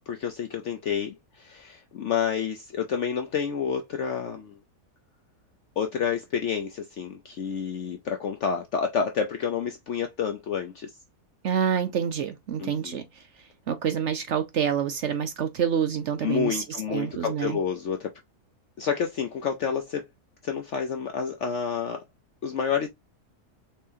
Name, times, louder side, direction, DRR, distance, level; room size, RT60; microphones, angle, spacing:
voice 1, 0.0-4.6 5.8-10.9 12.6-13.0 16.2-18.1 18.8-20.0 20.4-22.0 22.4-22.9, left 7 dB, 60° left, 0.8 m, -29 dB
voice 2, 11.4-13.0 13.7-17.6, right 8 dB, 65° right, 0.8 m, -27 dB
4.2 x 3.7 x 2.6 m
omnidirectional pair, 1.7 m